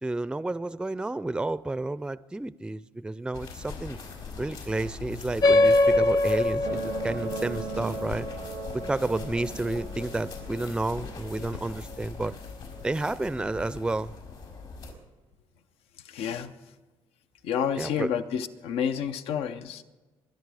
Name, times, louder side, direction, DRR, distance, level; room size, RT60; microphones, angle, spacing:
voice 1, 0.0-4.0 4.4-8.3 8.7-12.4 12.8-14.1 17.8-18.1, right 2 dB, 10° right, 0.4 m, -31 dB
sound 1, 3.3-14.9, left 5 dB, 75° left, 4.9 m, -41 dB
sound 2, 5.4-10.4, left 2 dB, 45° left, 0.7 m, -24 dB
sound 3, 6.6-13.7 14.6-14.7, right 10 dB, 90° right, 0.8 m, -42 dB
voice 2, 16.1-16.5 17.4-19.8, left 8 dB, 90° left, 0.7 m, -29 dB
23.5 x 10.5 x 4.9 m
cardioid pair, 90°, 10 cm